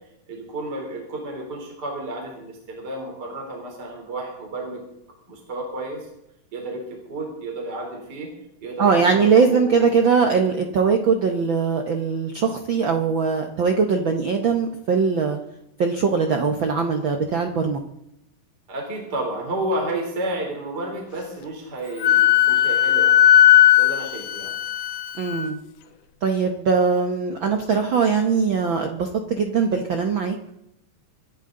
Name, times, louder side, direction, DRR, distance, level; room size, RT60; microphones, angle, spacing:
voice 1, 0.3-4.8 5.3-6.1 6.5-8.3 8.6-9.9 18.7-23.3 23.8-24.5, right 1 dB, 30° right, 0 dB, 3.7 m, -31 dB
voice 2, 8.8-15.4 15.8-17.8 25.2-25.6 26.2-30.5, right 5 dB, 65° right, 5 dB, 1.2 m, -21 dB
Wind instrument woodwind instrument, 22.0-25.5, left 12 dB, 80° left, 2.3 m, -16 dB
25.5 x 11.5 x 3.8 m, 0.83 s
omnidirectional pair, 3.8 m